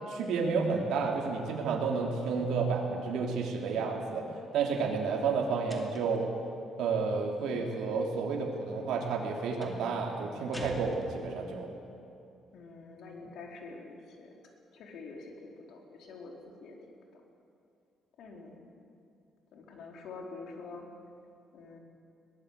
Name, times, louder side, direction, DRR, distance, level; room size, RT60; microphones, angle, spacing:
voice 1, 0.1-4.2 4.5-6.3 6.8-11.7, right 4 dB, 75° right, 0 dB, 3.2 m, -31 dB
sound 1, 5.7-6.3 9.6-9.9 10.5-11.6, left 1 dB, 10° left, 2.4 m, -45 dB
voice 2, 12.5-14.3 14.7-16.8 17.1-17.2 18.2-18.7 19.5-20.9 21.5-21.8, left 3 dB, 70° left, 1 dB, 4.1 m, -46 dB
21.5 x 18.0 x 8.3 m, 2.6 s
cardioid pair, 150°, 0 cm